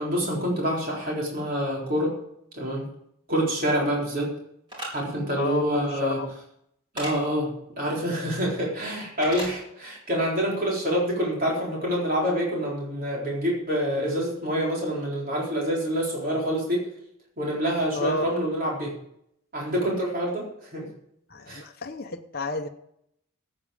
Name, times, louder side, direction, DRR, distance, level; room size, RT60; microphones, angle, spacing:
voice 1, 0.0-2.1 2.5-2.9 3.3-4.3 4.9-6.2 6.9-16.8 17.4-18.9 19.5-20.9 21.5-21.6, equal, 40° right, -3 dB, 4.1 m, -27 dB
sound 1, 4.7-4.9 7.0-7.1 9.2-9.5, equal, 20° right, 4.5 m, -33 dB
voice 2, 17.9-18.3 21.3-22.7, left 3 dB, 45° left, 3 dB, 1.0 m, -31 dB
14.0 x 8.8 x 5.1 m, 0.73 s
head